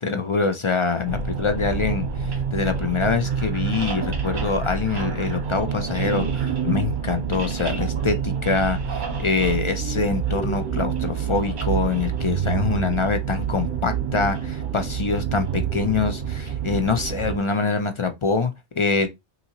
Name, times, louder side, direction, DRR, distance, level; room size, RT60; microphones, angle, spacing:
voice 1, 0.0-19.1, left 4 dB, 45° left, 0.4 m, -25 dB
sound 1, 1.0-17.4, right 7 dB, 45° right, 1.0 m, -27 dB
5.5 x 2.7 x 2.8 m
omnidirectional pair, 1.2 m